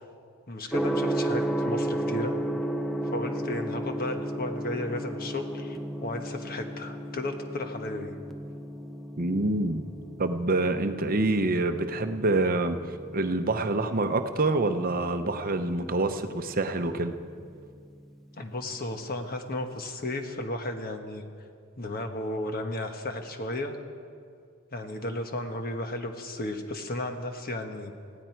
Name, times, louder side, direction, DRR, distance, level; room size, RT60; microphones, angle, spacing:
voice 1, 0.5-2.4 3.0-8.2 18.4-21.2 21.8-23.8 24.7-27.9, left 1 dB, 40° left, 5 dB, 1.2 m, -34 dB
Gong, 0.7-18.6, right 1 dB, ahead, 0.6 m, -35 dB
voice 2, 9.2-9.8 10.2-17.2, right 2 dB, 40° right, 8 dB, 0.8 m, -26 dB
20.5 x 15.5 x 4.6 m, 2.2 s
head